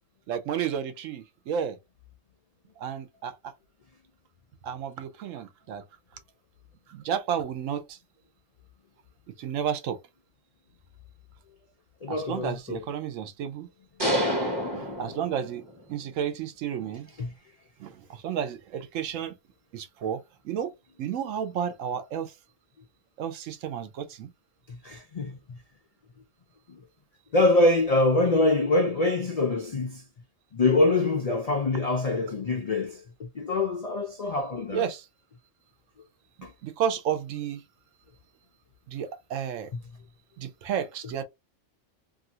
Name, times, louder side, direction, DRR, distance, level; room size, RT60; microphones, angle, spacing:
voice 1, 0.3-1.8 2.8-3.3 4.6-5.8 6.9-8.0 9.4-10.0 12.1-13.7 14.7-15.6 15.9-17.1 17.8-19.4 19.7-20.7 21.0-22.3 23.2-24.3 34.7-35.0 36.6-37.6 38.9-39.7 40.4-41.2, right 8 dB, 80° right, 1.0 m, -32 dB
voice 2, 12.0-12.8 17.2-17.3 24.8-25.3 27.3-30.0 30.5-34.8 36.4-36.5 39.7-39.8, left 2 dB, 65° left, 0.3 m, -24 dB
sound 1, 14.0-15.8, equal, 20° right, 0.9 m, -28 dB
2.7 x 2.4 x 2.7 m
omnidirectional pair, 1.3 m